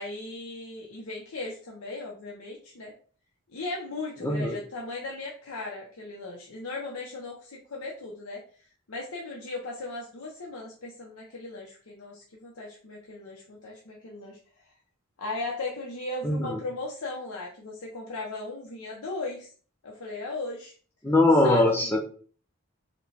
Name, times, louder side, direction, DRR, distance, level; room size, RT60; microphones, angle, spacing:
voice 1, 0.0-2.9 3.5-8.4 8.9-14.4 15.2-19.5 19.8-20.7 21.4-21.9, left 2 dB, 90° left, -2 dB, 0.7 m, -37 dB
voice 2, 4.2-4.6 16.2-16.6 21.0-22.1, left 1 dB, 10° left, -1 dB, 0.5 m, -22 dB
4.9 x 2.2 x 3.3 m, 0.43 s
head